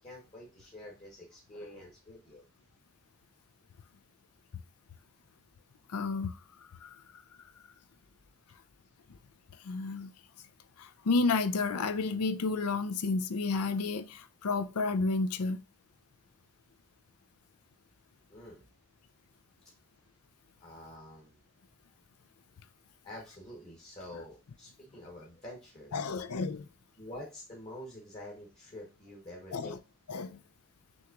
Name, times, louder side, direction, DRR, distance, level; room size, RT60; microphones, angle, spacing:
voice 1, 0.0-2.5 18.3-18.6 20.6-21.4 23.0-26.1 27.0-29.7, left 1 dB, 30° left, 1.1 m, -47 dB
voice 2, 5.9-7.2 9.6-10.1 10.8-15.6 25.9-26.7 29.5-29.8 30.1-30.4, left 3 dB, 85° left, 0.5 m, -31 dB
6.2 x 2.9 x 2.4 m
head